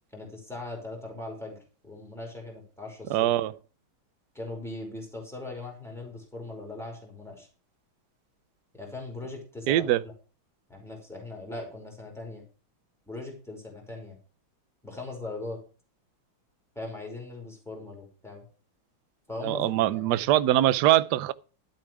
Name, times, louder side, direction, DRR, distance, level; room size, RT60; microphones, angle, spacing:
voice 1, 0.1-3.3 4.3-7.5 8.7-10.1 10.7-12.4 13.1-14.2 14.8-15.6 16.7-18.4 19.3-20.2, left 2 dB, ahead, 5.2 m, -40 dB
voice 2, 3.1-3.5 9.7-10.0 19.4-21.3, right 14 dB, 65° right, 1.1 m, -23 dB
12.5 x 8.7 x 4.8 m
omnidirectional pair, 2.3 m